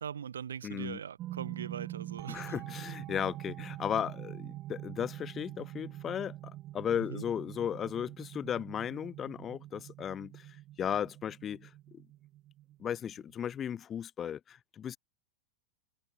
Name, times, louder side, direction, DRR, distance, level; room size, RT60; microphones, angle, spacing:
voice 1, 0.0-2.7 6.9-7.2, right 8 dB, 65° right, 1.6 m, -41 dB
voice 2, 0.6-1.0 2.3-12.0 12.8-15.0, left 9 dB, 25° left, 0.6 m, -36 dB
sound 1, 1.2-13.8, right 15 dB, 35° right, 2.5 m, -45 dB
figure-of-eight pair, 90°, 0 cm